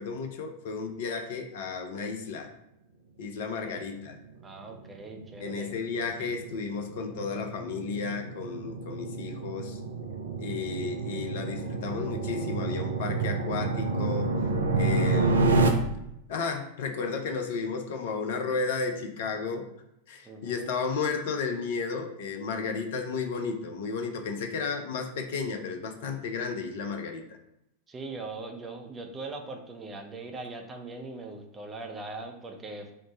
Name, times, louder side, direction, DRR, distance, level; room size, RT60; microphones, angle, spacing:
voice 1, 0.0-2.5 3.2-4.2 5.4-9.8 10.4-14.3 14.8-15.7 16.3-19.7 20.1-27.2, left 5 dB, 55° left, 5 dB, 0.5 m, -33 dB
voice 2, 4.4-5.7 20.2-20.7 27.9-32.9, right 3 dB, 15° right, 3 dB, 0.5 m, -40 dB
sound 1, 4.6-15.7, right 3 dB, 75° right, 0.4 m, -29 dB
3.1 x 2.0 x 4.1 m, 0.82 s
figure-of-eight pair, 90°, 0 cm